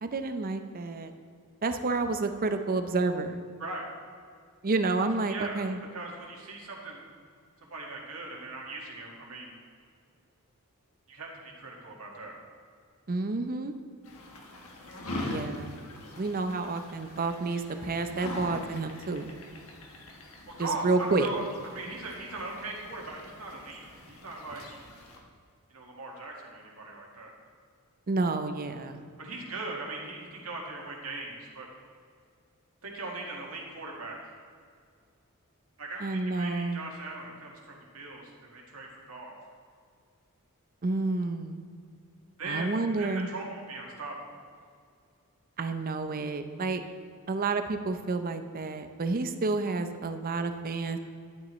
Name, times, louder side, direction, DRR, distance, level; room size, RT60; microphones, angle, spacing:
voice 1, 0.0-1.1 1.6-3.4 4.6-5.8 13.1-13.7 15.2-15.8 16.2-19.3 20.6-21.3 28.1-29.0 36.0-36.8 40.8-41.6 42.4-43.3 45.6-46.8 47.3-51.0, right 3 dB, 40° right, 8 dB, 0.6 m, -30 dB
voice 2, 5.3-5.6 5.9-7.0 7.7-9.6 11.1-12.3 20.5-24.7 25.7-27.3 29.2-31.7 32.8-34.4 35.8-39.3 42.4-42.7 43.0-44.4, right 2 dB, 70° right, -1 dB, 1.8 m, -39 dB
sound 1, 14.0-25.2, left 1 dB, 65° left, 1.3 m, -43 dB
11.5 x 9.1 x 3.1 m, 2.2 s
head